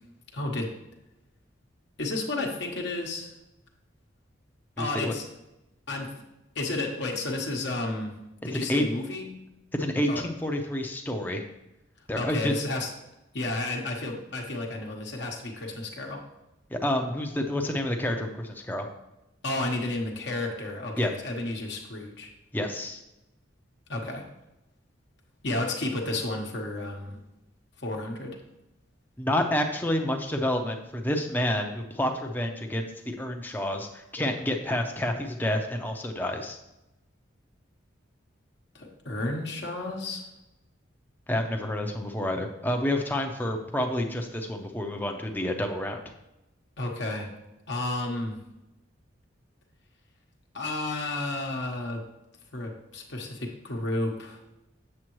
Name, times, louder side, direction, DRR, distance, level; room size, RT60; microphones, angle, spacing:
voice 1, 0.3-0.7 2.0-3.3 4.8-5.2 5.9-6.1 6.5-8.1 8.4-9.3 10.1-10.2 12.2-12.9 13.3-16.2 19.4-22.3 23.9-24.3 25.4-27.2 27.8-28.4 38.7-40.3 46.8-47.3 47.7-48.4 50.5-52.0 52.5-54.4, left 2 dB, 60° left, 0 dB, 1.1 m, -32 dB
voice 2, 4.8-5.1 8.5-8.8 9.7-11.5 12.1-12.5 16.7-18.9 21.0-21.1 22.5-23.0 29.2-36.6 41.3-46.0, left 1 dB, 10° left, 3 dB, 0.6 m, -29 dB
7.5 x 7.3 x 3.1 m, 0.93 s
head